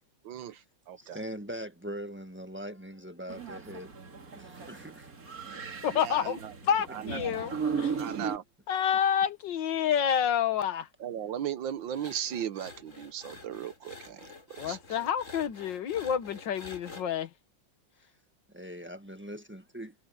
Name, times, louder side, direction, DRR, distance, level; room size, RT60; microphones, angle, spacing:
voice 1, 0.2-1.2 5.9-6.5 6.9-7.3 8.0-8.4 11.0-14.3 14.6-14.8, right 10 dB, 80° right, 1.7 m, -37 dB
voice 2, 1.0-3.9 4.3-5.1 18.5-19.9, equal, 5° right, 1.3 m, -41 dB
sound 1, 3.3-8.4, right 6 dB, 50° right, 2.7 m, -37 dB
voice 3, 5.8-8.0 8.7-10.9 14.6-17.3, left 8 dB, 75° left, 1.9 m, -29 dB
sound 2, 11.9-17.0, left 3 dB, 40° left, 4.6 m, -48 dB
omnidirectional pair, 2.0 m